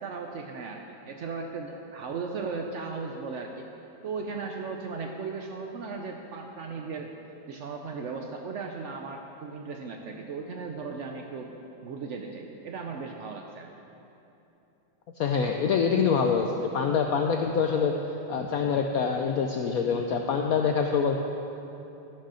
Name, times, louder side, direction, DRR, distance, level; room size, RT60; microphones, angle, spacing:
voice 1, 0.0-3.7 4.0-7.1 7.5-11.5 11.8-13.7, right 4 dB, 85° right, 2 dB, 0.6 m, -36 dB
voice 2, 15.2-17.9 18.3-21.2, left 6 dB, 70° left, 3 dB, 0.8 m, -25 dB
13.5 x 6.5 x 6.2 m, 3.0 s
omnidirectional pair, 2.1 m